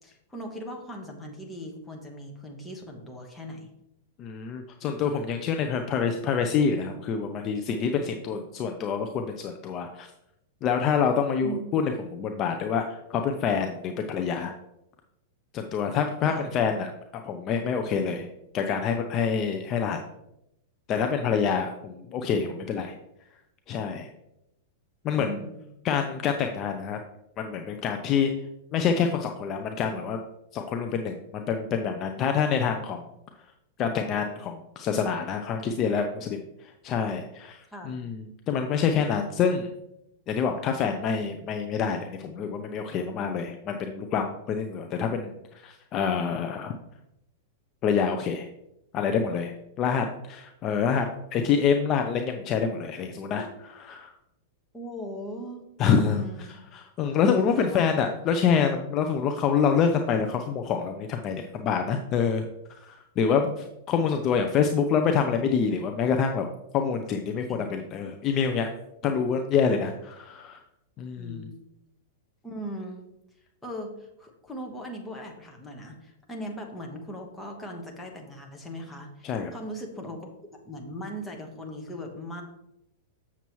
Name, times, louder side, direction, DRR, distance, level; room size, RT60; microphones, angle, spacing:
voice 1, 0.0-3.7 11.4-11.6 16.2-16.5 25.1-25.6 37.7-38.1 54.7-55.6 55.9-56.6 57.3-58.0 63.4-63.5 67.5-67.7 71.2-71.6 72.4-73.0 73.6-82.4, equal, 5° left, 0 dB, 1.2 m, -39 dB
voice 2, 4.2-10.1 10.6-14.5 15.5-16.9 17.3-18.3 18.5-20.0 20.9-23.0 23.7-24.1 25.0-25.4 25.8-27.0 27.4-28.3 28.7-30.2 30.5-33.0 33.8-37.6 37.9-39.7 40.3-45.3 45.6-46.7 47.8-48.5 48.9-49.5 49.8-51.1 51.3-53.4 53.9-54.1 55.8-56.2 56.7-62.5 62.8-66.5 66.7-68.7 69.0-70.6 71.0-71.4 79.2-79.5, left 6 dB, 30° left, 5 dB, 0.5 m, -26 dB
7.1 x 6.9 x 3.1 m, 0.85 s
supercardioid pair, 150°, 0 cm